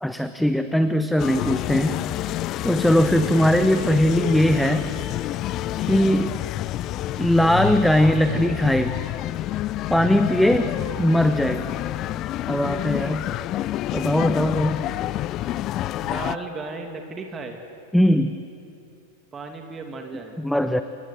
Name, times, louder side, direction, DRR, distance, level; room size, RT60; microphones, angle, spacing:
voice 1, 0.0-2.0 2.6-4.9 5.8-6.3 7.2-9.0 9.9-10.7 11.0-11.7 12.5-13.3 13.9-14.9 17.9-18.4 20.4-20.8, equal, ahead, 9 dB, 1.0 m, -20 dB
sound 1, 1.2-16.4, left 14 dB, 35° left, 0.6 m, -28 dB
voice 2, 16.0-17.6 19.3-20.4, right 3 dB, 20° right, 3 dB, 2.4 m, -35 dB
29.5 x 25.0 x 8.0 m, 2.7 s
figure-of-eight pair, 90°, 0 cm